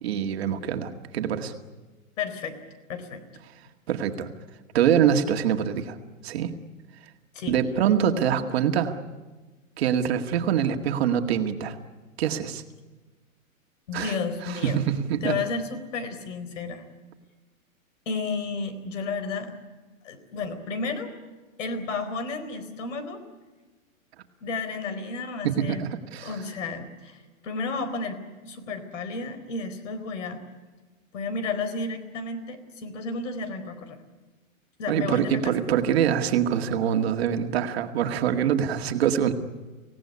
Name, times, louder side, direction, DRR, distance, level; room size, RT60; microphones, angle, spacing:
voice 1, 0.0-1.5 3.9-4.3 4.7-6.0 6.2-6.5 7.5-9.0 9.8-11.8 12.2-12.6 13.9-14.2 14.4-15.4 25.4-26.3 34.9-39.3, right 9 dB, 45° right, 5 dB, 2.0 m, -24 dB
voice 2, 2.2-2.6 2.9-3.2 7.3-7.6 13.9-14.8 15.2-16.8 18.1-19.5 20.0-21.1 21.6-23.2 24.4-25.8 26.2-30.4 31.1-34.0 34.8-35.5, left 4 dB, 60° left, 11 dB, 4.2 m, -32 dB
25.5 x 17.5 x 9.7 m, 1.3 s
hypercardioid pair, 160°, 42 cm